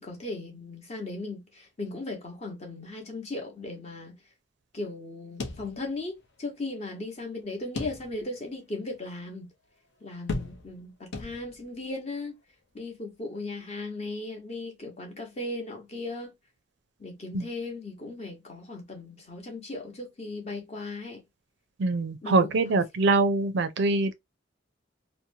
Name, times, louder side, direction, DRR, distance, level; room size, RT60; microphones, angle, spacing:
voice 1, 0.0-4.2 4.7-9.5 10.0-12.3 12.7-16.3 17.0-21.2 22.2-22.8, left 2 dB, 35° left, 1.0 m, -37 dB
sound 1, 5.4-6.3 6.6-6.7 7.8-8.4 8.9-9.0 10.3-10.8 11.1-11.8, left 3 dB, 60° left, 0.7 m, -36 dB
voice 2, 21.8-24.1, right 3 dB, 60° right, 0.4 m, -24 dB
2.8 x 2.1 x 2.6 m
head